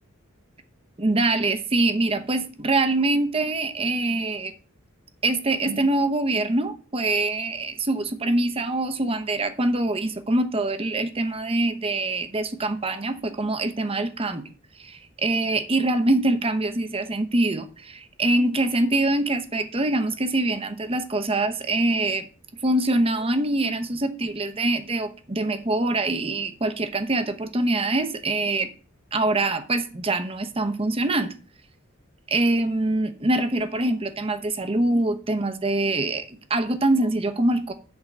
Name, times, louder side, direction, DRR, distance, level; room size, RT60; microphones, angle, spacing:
voice 1, 1.0-4.5 5.2-14.5 14.8-22.3 22.6-28.7 29.1-31.3 32.3-37.7, right 2 dB, 30° right, 0.9 m, -24 dB
8.0 x 3.9 x 6.8 m
head